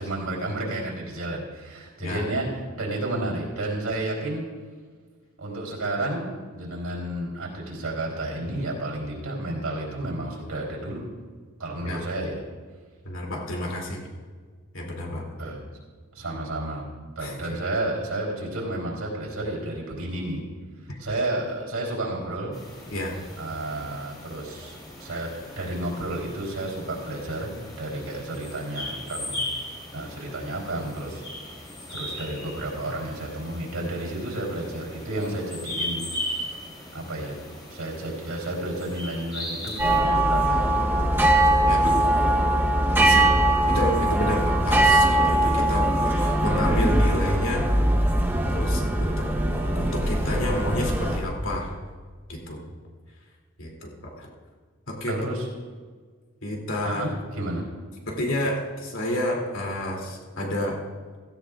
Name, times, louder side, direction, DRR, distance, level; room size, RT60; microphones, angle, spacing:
voice 1, 0.0-4.4 5.4-11.1 11.6-12.4 15.4-15.7 16.1-16.9 17.2-20.4 21.0-22.5 23.4-29.4 29.9-31.2 31.9-36.6 36.9-37.4 37.7-40.8 55.1-55.5 56.8-57.1 57.4-57.6, right 1 dB, 90° right, -1 dB, 3.7 m, -31 dB
voice 2, 13.0-14.1 14.7-15.2 17.2-17.4 20.9-21.0 22.9-23.2 41.6-42.0 43.0-43.3 43.7-47.7 48.5-49.3 49.7-51.7 52.3-52.6 53.6-54.3 54.9-55.2 56.4-57.0 58.1-60.8, left 1 dB, 65° left, -1 dB, 3.0 m, -30 dB
sound 1, 22.5-40.0, left 1 dB, 20° left, 4.0 m, -38 dB
sound 2, 39.8-51.2, right 1 dB, 10° right, 1.0 m, -21 dB
16.5 x 15.0 x 2.5 m, 1.5 s
head